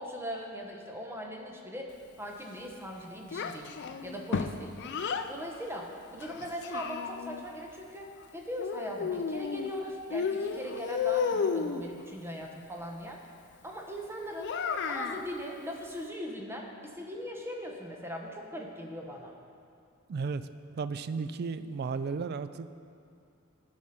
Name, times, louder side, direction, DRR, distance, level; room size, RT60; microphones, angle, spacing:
voice 1, 0.0-1.9 2.2-3.7 4.0-4.8 5.3-13.2 13.6-14.6 14.9-19.3, equal, 10° right, 0 dB, 0.9 m, -40 dB
Child speech kid speaking, 3.3-5.3 6.2-7.4 8.6-9.8 10.1-11.9 14.4-15.3, left 6 dB, 55° left, 0.4 m, -32 dB
voice 2, 20.1-20.5 20.8-22.7, right 5 dB, 50° right, 12 dB, 0.3 m, -34 dB
14.0 x 4.9 x 4.3 m, 2.4 s
head